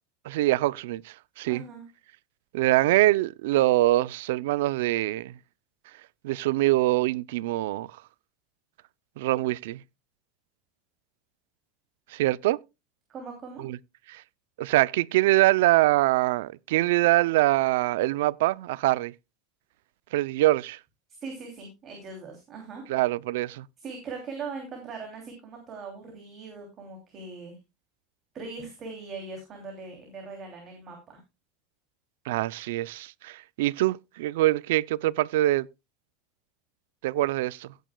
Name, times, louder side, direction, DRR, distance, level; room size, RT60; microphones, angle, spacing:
voice 1, 0.2-1.6 2.5-5.3 6.2-7.9 9.2-9.8 12.1-12.6 13.6-13.8 14.1-14.2 14.6-19.1 20.1-20.8 22.9-23.7 32.3-35.7 37.0-37.7, right 17 dB, 70° right, 0.4 m, -24 dB
voice 2, 1.4-1.8 13.1-13.6 21.1-22.8 23.8-27.5 28.3-31.2, right 4 dB, 25° right, 2.9 m, -40 dB
16.5 x 9.2 x 2.3 m
supercardioid pair, 175°, 0 cm